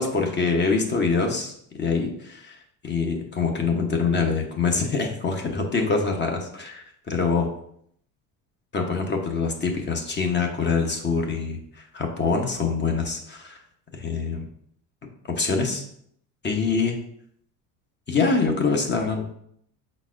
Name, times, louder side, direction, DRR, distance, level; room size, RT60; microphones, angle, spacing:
voice 1, 0.0-7.5 8.7-13.6 13.9-14.5 15.4-15.8 16.4-17.0 18.1-19.2, left 4 dB, 25° left, 2 dB, 0.8 m, -25 dB
5.4 x 4.0 x 2.4 m, 0.68 s
supercardioid pair, 105°, 41 cm